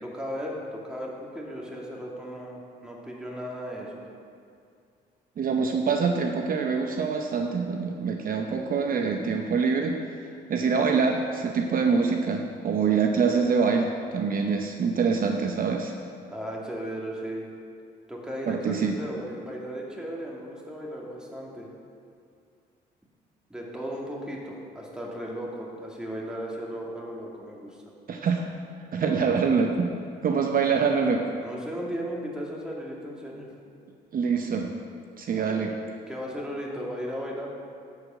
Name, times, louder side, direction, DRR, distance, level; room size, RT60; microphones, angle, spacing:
voice 1, 0.0-4.0 16.3-17.5 18.1-21.7 23.5-27.8 31.4-33.5 35.3-35.7 36.1-37.5, equal, 5° right, -3 dB, 2.1 m, -36 dB
voice 2, 5.4-15.9 18.5-19.0 28.1-28.5 28.9-29.9 30.2-31.2 34.1-34.7 35.2-35.7, right 5 dB, 50° right, 3 dB, 0.7 m, -25 dB
11.0 x 4.9 x 7.6 m, 2.4 s
cardioid pair, 95°, 18 cm